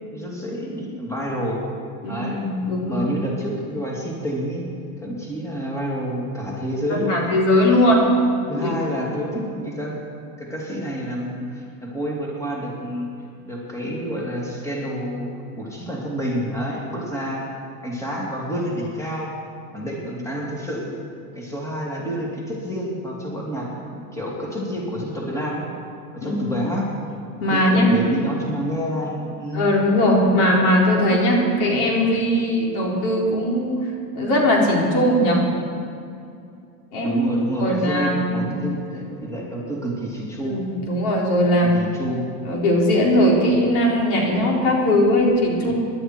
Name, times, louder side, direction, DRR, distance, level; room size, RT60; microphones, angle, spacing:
voice 1, 0.1-1.6 2.1-2.4 2.9-4.7 5.0-7.3 8.5-10.0 10.4-13.2 13.4-17.5 17.8-19.3 19.7-21.0 21.3-25.7 26.1-26.9 27.5-29.7 37.0-38.8 39.2-40.6 41.6-42.3 45.7-45.8, equal, 5° left, -3 dB, 2.9 m, -28 dB
voice 2, 2.0-3.1 6.9-8.0 8.6-8.8 26.2-26.4 27.4-27.9 29.5-33.8 34.1-35.4 36.9-37.2 37.6-38.5 40.4-41.7 42.4-45.7, left 1 dB, 65° left, -2 dB, 4.0 m, -19 dB
18.0 x 11.5 x 4.6 m, 2.4 s
supercardioid pair, 115°, 46 cm